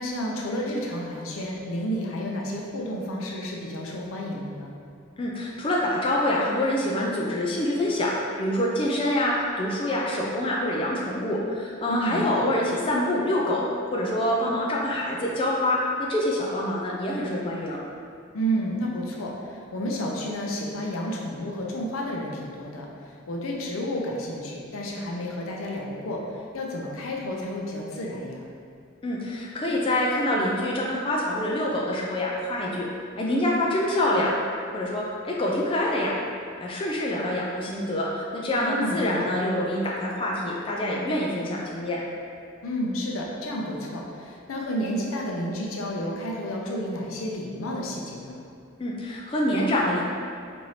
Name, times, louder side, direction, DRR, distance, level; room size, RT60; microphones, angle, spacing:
voice 1, 0.0-4.7 11.9-12.5 18.3-28.4 38.7-39.3 42.6-48.4, equal, 90° left, -1 dB, 0.6 m, -31 dB
voice 2, 5.2-13.6 13.9-17.8 29.0-32.9 33.2-34.3 34.7-36.2 36.6-42.0 48.8-50.0, left 1 dB, 25° left, -4 dB, 0.3 m, -26 dB
4.2 x 2.6 x 3.1 m, 2.3 s
head